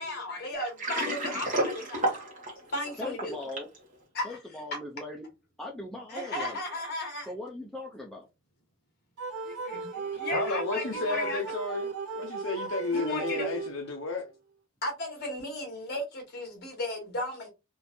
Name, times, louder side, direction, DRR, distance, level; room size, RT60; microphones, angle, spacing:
voice 1, 0.0-2.2 2.7-3.4 4.1-4.4 6.1-7.3 9.4-11.4 12.9-13.5 14.8-17.5, left 1 dB, 45° left, 1.6 m, -35 dB
Water, 0.6-3.8, right 1 dB, 35° right, 1.1 m, -31 dB
voice 2, 3.0-3.7 4.2-5.3 5.6-6.6 7.3-8.3, left 2 dB, ahead, 0.4 m, -39 dB
sound 1, 9.2-14.1, right 5 dB, 85° right, 0.5 m, -36 dB
voice 3, 10.3-11.9 12.2-14.3, left 3 dB, 60° left, 0.5 m, -32 dB
3.6 x 2.6 x 2.7 m
head